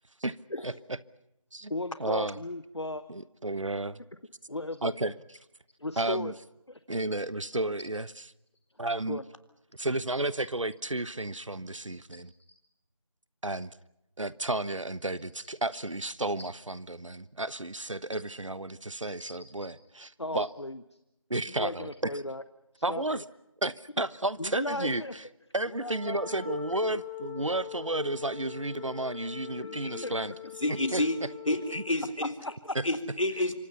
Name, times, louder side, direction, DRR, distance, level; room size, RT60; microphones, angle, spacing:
voice 1, 0.6-1.0 1.5-1.7 2.0-2.4 3.1-4.0 4.8-5.1 6.0-6.3 6.9-8.1 8.8-9.2 9.8-12.3 13.4-13.7 14.2-20.5 21.3-22.1 22.8-23.2 23.6-25.0 25.5-30.3 30.7-31.0 31.7-31.8 32.7-32.8, right 2 dB, 70° right, 19 dB, 1.0 m, -32 dB
voice 2, 1.7-3.0 4.5-4.9 5.8-6.3 6.7-6.8 9.1-9.2 19.5-19.7 20.2-20.8 21.6-22.4 22.9-23.0 24.4-25.1 25.7-27.0 30.0-30.1 32.4-32.8, left 2 dB, 55° left, 13 dB, 1.0 m, -36 dB
Wind instrument woodwind instrument, 25.7-32.0, left 11 dB, 30° right, 3.2 m, -43 dB
voice 3, 29.5-30.2 30.6-31.2 31.5-32.3 32.8-33.5, left 1 dB, 75° left, 7 dB, 3.6 m, -30 dB
27.5 x 25.0 x 5.7 m, 0.86 s
figure-of-eight pair, 180°, 17 cm